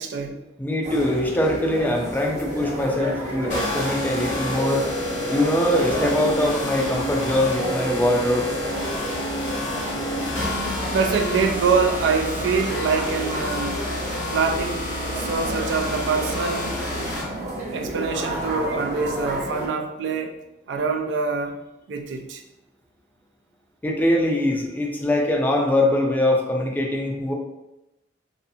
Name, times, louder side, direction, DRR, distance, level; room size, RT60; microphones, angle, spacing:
voice 1, 0.0-0.4 10.9-13.8 14.3-14.9 15.1-16.7 17.7-20.4 20.7-21.6 21.9-22.4, right 5 dB, 75° right, 4 dB, 0.3 m, -24 dB
voice 2, 0.6-4.9 5.3-8.5 23.8-27.3, left 1 dB, 10° left, 0 dB, 0.3 m, -22 dB
sound 1, 0.8-19.7, right 1 dB, 40° right, 0.7 m, -31 dB
sound 2, 3.5-17.2, left 1 dB, 70° left, 0.9 m, -29 dB
2.6 x 2.4 x 2.6 m, 0.92 s
head